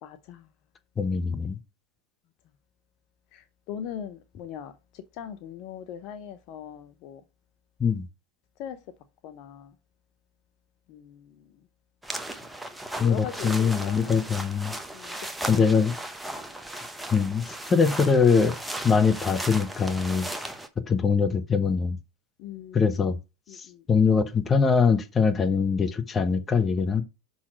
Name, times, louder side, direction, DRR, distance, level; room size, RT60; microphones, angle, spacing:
voice 1, 0.0-0.5 3.3-7.2 8.6-8.8 9.2-9.7 10.9-11.4 13.0-14.3 14.9-15.8 22.4-22.9 23.5-23.8, left 9 dB, 50° left, 0.6 m, -40 dB
voice 2, 1.0-1.6 7.8-8.1 13.0-14.7 15.5-15.9 17.1-18.6 18.8-20.3 20.9-22.0 22.7-23.2 23.5-27.0, left 5 dB, 25° left, 1.0 m, -23 dB
sound 1, 12.0-20.7, right 1 dB, 5° right, 1.0 m, -36 dB
5.9 x 4.0 x 6.0 m
figure-of-eight pair, 90°, 0 cm